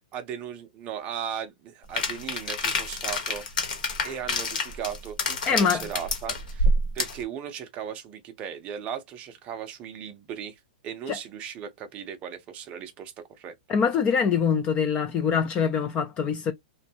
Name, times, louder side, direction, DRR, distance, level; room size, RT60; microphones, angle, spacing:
voice 1, 0.1-3.5 4.0-6.7 6.9-13.6, right 8 dB, 25° right, 0.5 m, -37 dB
sound 1, 2.0-7.2, left 1 dB, 75° left, 1.1 m, -27 dB
voice 2, 5.4-5.8 11.1-11.2 13.7-16.5, left 6 dB, 20° left, 0.3 m, -24 dB
2.5 x 2.2 x 2.7 m
hypercardioid pair, 150°, 5 cm